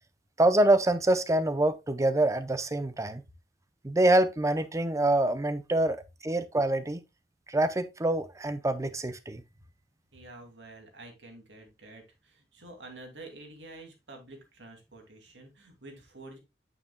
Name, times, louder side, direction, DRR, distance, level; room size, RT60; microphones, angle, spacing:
voice 1, 0.4-3.2 3.8-6.0 6.2-7.0 7.5-9.4, right 1 dB, 15° right, 0.6 m, -25 dB
voice 2, 10.1-16.4, right 2 dB, 85° right, 2.4 m, -48 dB
8.8 x 6.8 x 2.2 m
head